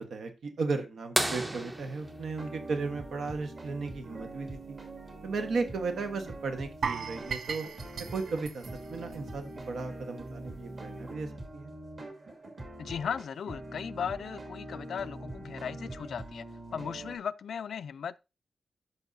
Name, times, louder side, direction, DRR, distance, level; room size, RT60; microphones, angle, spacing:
voice 1, 0.0-4.8 5.2-7.6 8.1-8.6 8.9-11.7, right 4 dB, 85° right, 1.3 m, -35 dB
sound 1, 1.2-3.6 5.5-5.6 7.9-8.0 9.7-9.9 10.7-10.8, right 1 dB, 15° right, 0.6 m, -33 dB
sound 2, 2.0-17.2, right 2 dB, 45° right, 2.2 m, -44 dB
sound 3, 6.8-9.8 10.1-10.3 10.8-10.9, right 6 dB, 65° right, 0.5 m, -37 dB
voice 2, 12.8-16.5 16.7-18.2, left 7 dB, 90° left, 0.3 m, -37 dB
12.5 x 5.3 x 2.7 m
wide cardioid pair, 175°, 0 cm